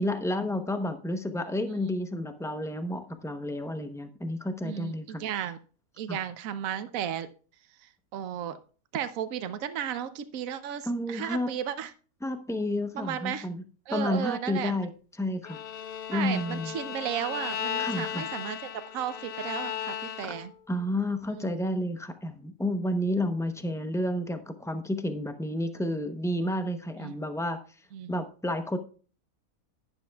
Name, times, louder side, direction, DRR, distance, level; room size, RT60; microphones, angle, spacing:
voice 1, 0.0-5.2 6.1-6.2 10.8-11.5 12.2-13.6 13.9-14.9 15.2-15.6 16.1-16.7 17.8-18.3 20.7-27.6 28.1-28.8, left 1 dB, 5° left, 7 dB, 0.4 m, -30 dB
voice 2, 4.6-5.6 6.0-7.3 8.1-8.6 8.9-11.9 12.9-13.5 13.9-14.8 16.1-20.5 21.3-21.5 27.0-27.1 27.9-28.2, right 9 dB, 70° right, 11 dB, 1.1 m, -34 dB
Bowed string instrument, 15.4-20.6, left 9 dB, 65° left, 0.5 m, -36 dB
11.0 x 10.0 x 2.3 m, 0.38 s
omnidirectional pair, 1.5 m